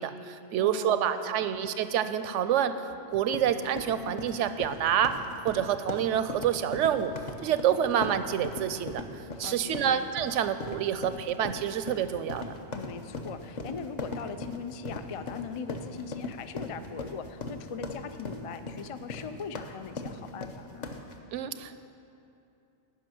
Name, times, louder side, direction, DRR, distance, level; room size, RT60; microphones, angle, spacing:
voice 1, 0.0-2.8 3.1-7.1 7.4-12.4 21.3-21.8, right 9 dB, 85° right, 12 dB, 0.9 m, -28 dB
voice 2, 0.5-1.5 9.3-10.0 12.7-20.9, left 6 dB, 60° left, 10 dB, 0.3 m, -40 dB
sound 1, 3.1-21.2, left 2 dB, 40° left, 0.9 m, -39 dB
11.0 x 6.3 x 9.1 m, 2.7 s
omnidirectional pair, 1.2 m